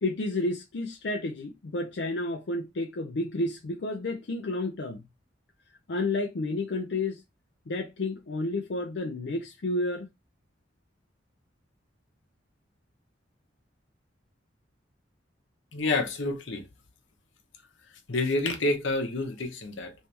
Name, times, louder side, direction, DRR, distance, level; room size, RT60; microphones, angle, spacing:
voice 1, 0.0-5.0 5.9-7.2 7.7-10.1, left 2 dB, 65° left, 0.5 m, -31 dB
voice 2, 15.7-16.7 18.1-19.9, left 2 dB, 85° left, 1.0 m, -28 dB
3.2 x 2.9 x 3.3 m
head